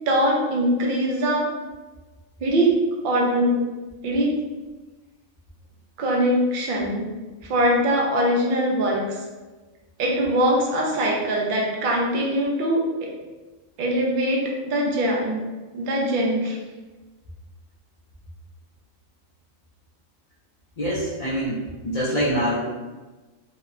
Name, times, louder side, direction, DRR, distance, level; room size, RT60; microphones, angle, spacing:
voice 1, 0.1-1.5 2.4-2.8 3.0-3.6 4.0-4.3 6.0-7.1 7.4-9.2 10.0-13.1 13.8-15.4 15.7-16.6, equal, 60° right, -2 dB, 0.5 m, -22 dB
voice 2, 20.8-22.6, equal, 70° left, -8 dB, 0.3 m, -25 dB
2.9 x 2.1 x 2.4 m, 1.2 s
omnidirectional pair, 1.4 m